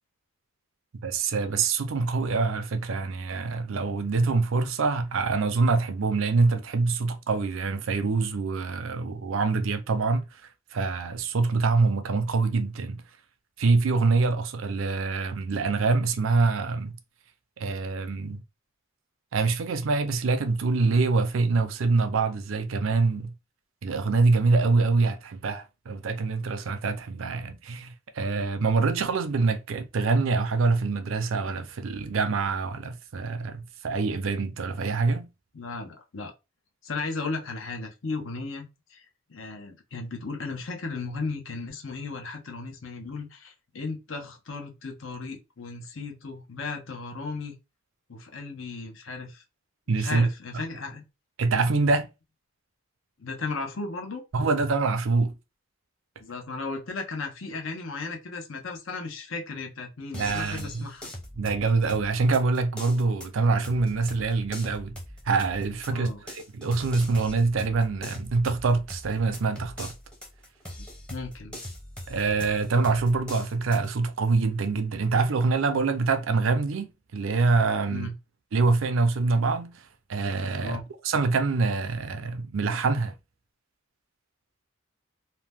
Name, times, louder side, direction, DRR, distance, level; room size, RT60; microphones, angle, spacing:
voice 1, 1.0-10.2 10.7-13.0 13.6-17.0 17.6-18.4 19.3-23.3 23.8-35.3 49.9-50.3 51.4-52.1 54.3-55.3 60.1-60.9 61.4-65.0 65.3-69.9 72.1-78.1 78.5-79.8 80.1-80.8 81.0-83.1, right 4 dB, 65° right, 0.5 m, -25 dB
voice 2, 35.5-36.3 36.8-39.0 39.3-47.5 48.1-49.4 50.0-51.0 53.2-54.2 56.2-61.1 65.9-66.2 71.1-71.6 77.9-78.1 80.6-80.8, left 3 dB, 65° left, 0.7 m, -35 dB
sound 1, 60.1-73.9, equal, 5° left, 0.7 m, -42 dB
2.7 x 2.1 x 3.3 m
head